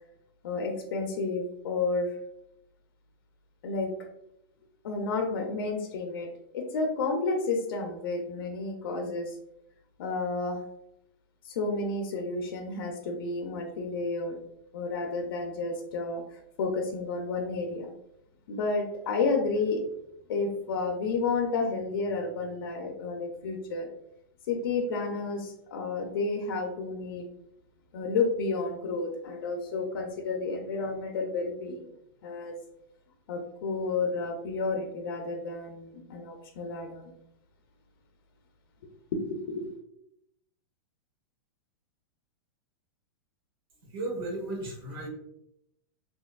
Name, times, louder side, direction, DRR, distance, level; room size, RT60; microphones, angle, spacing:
voice 1, 0.4-2.1 3.6-3.9 4.8-6.3 6.5-9.4 10.0-10.6 11.5-14.4 14.7-17.9 18.5-19.8 20.3-23.9 24.5-27.3 27.9-31.9 32.2-32.6 33.3-37.1 39.2-39.7, left 3 dB, 65° left, 3 dB, 0.6 m, -31 dB
voice 2, 43.9-45.1, right 2 dB, 70° right, 0 dB, 1.2 m, -34 dB
3.4 x 2.8 x 2.2 m, 0.79 s
supercardioid pair, 160°, 12 cm